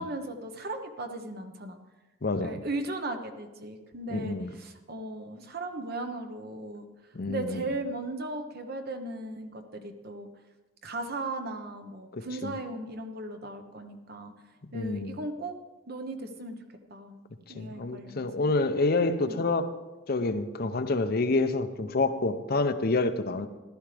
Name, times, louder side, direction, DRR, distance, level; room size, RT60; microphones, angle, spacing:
voice 1, 0.0-1.8 2.4-6.9 7.3-10.3 10.8-14.3 14.7-15.6 15.9-16.6 16.9-17.2 17.5-18.5 19.2-19.4 23.3-23.4, right 2 dB, 55° right, 1.1 m, -37 dB
voice 2, 2.2-2.6 4.1-4.5 7.1-7.6 12.1-12.5 14.7-15.2 17.6-19.7 20.1-23.5, left 3 dB, 55° left, 0.7 m, -28 dB
15.0 x 11.5 x 3.4 m
head